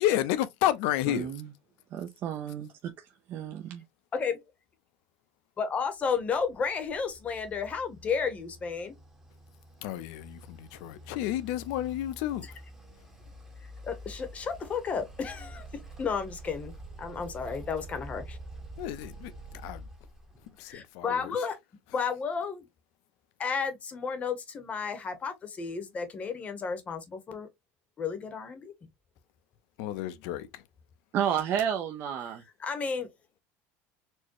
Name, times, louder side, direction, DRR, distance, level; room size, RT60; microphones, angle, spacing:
voice 1, 0.0-1.3 9.8-12.5 18.8-19.3 19.6-19.9 20.6-21.2 29.8-30.6, left 13 dB, 75° left, 0.6 m, -30 dB
voice 2, 1.1-1.5 1.9-3.8 31.1-32.4, right 9 dB, 40° right, 0.5 m, -32 dB
voice 3, 4.1-4.4 5.6-9.0 12.4-12.5 13.6-18.4 20.6-21.6 21.9-22.7 23.4-27.5 28.0-28.7 32.6-33.1, left 5 dB, 25° left, 0.8 m, -32 dB
sound 1, 6.3-20.7, right 1 dB, 10° right, 0.8 m, -47 dB
4.4 x 2.1 x 2.9 m
cardioid pair, 160°, 6 cm